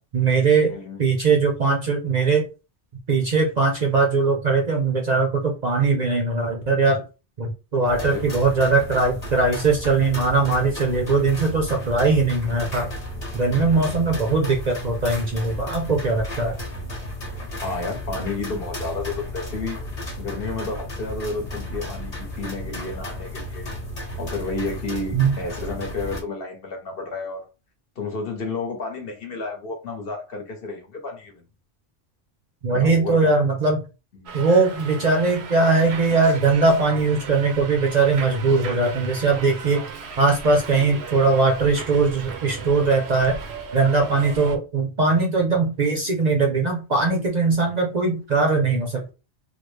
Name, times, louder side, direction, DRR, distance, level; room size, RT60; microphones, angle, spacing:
voice 1, 0.1-2.4 3.1-7.0 7.4-12.9 13.3-16.6 25.1-25.4 32.6-33.8 34.3-39.8 40.2-43.4 43.7-49.1, right 3 dB, 50° right, 0.6 m, -20 dB
sound 1, 7.8-26.2, left 1 dB, 35° left, 1.1 m, -34 dB
voice 2, 7.9-8.2 13.5-14.0 17.6-19.8 20.2-23.7 24.2-27.4 28.0-31.4 32.7-33.3 34.1-34.4, left 3 dB, 60° left, 1.0 m, -31 dB
Subway metro underground, 34.3-44.6, right 5 dB, 70° right, 0.9 m, -36 dB
3.4 x 2.1 x 3.2 m
omnidirectional pair, 1.2 m